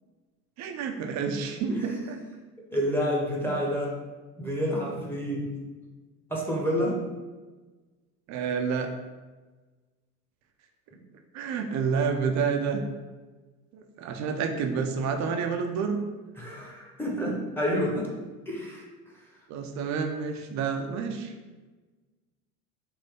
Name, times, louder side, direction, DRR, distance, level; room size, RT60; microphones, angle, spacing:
voice 1, 0.6-2.2 8.3-8.9 11.3-12.8 13.7-16.0 19.5-21.3, right 5 dB, 40° right, 5 dB, 0.6 m, -29 dB
voice 2, 1.7-2.1 2.7-4.0 4.4-5.5 6.3-7.0 16.4-18.1 18.5-18.8, equal, 5° left, -3 dB, 1.0 m, -29 dB
4.2 x 2.7 x 3.6 m, 1.3 s
hypercardioid pair, 80°, 44 cm